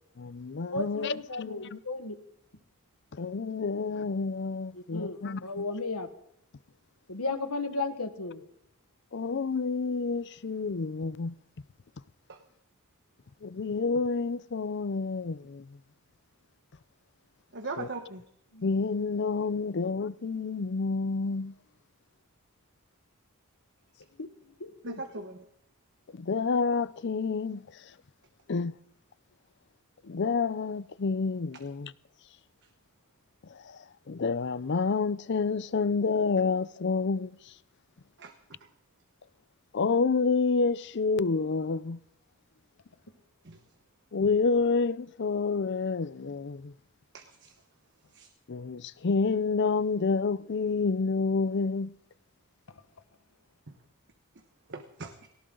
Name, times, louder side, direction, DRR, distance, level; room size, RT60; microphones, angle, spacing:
voice 1, 0.2-1.8 3.1-5.4 9.1-11.4 13.4-15.7 17.8-17.9 18.6-21.6 26.1-27.9 28.5-28.8 30.0-31.9 33.5-37.5 39.7-42.0 44.1-46.7 48.5-52.0, left 4 dB, 50° left, 0.5 m, -29 dB
voice 2, 0.7-2.2 4.7-6.1 7.1-8.5 18.5-18.8 24.2-25.0, left 3 dB, 80° left, 1.5 m, -35 dB
voice 3, 17.5-18.2 24.8-25.4 38.2-38.3 43.4-43.6 47.1-47.5 48.1-48.3 54.7-55.3, right 3 dB, 55° right, 1.2 m, -39 dB
18.5 x 17.0 x 3.9 m
head